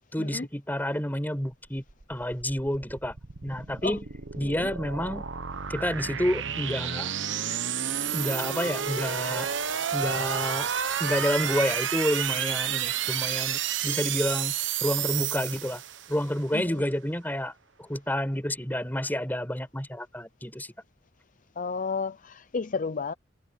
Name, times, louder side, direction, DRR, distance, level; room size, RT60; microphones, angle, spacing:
voice 1, 0.1-1.8 2.1-3.1 3.4-4.1 4.4-5.3 5.7-7.1 8.1-9.5 9.9-10.7 11.0-14.5 14.8-15.8 16.1-17.5 17.8-20.7, equal, 10° left, 5.2 m, -29 dB
sound 1, 1.7-16.3, right 9 dB, 80° right, 1.0 m, -31 dB
voice 2, 21.6-23.1, left 4 dB, 45° left, 0.6 m, -32 dB
head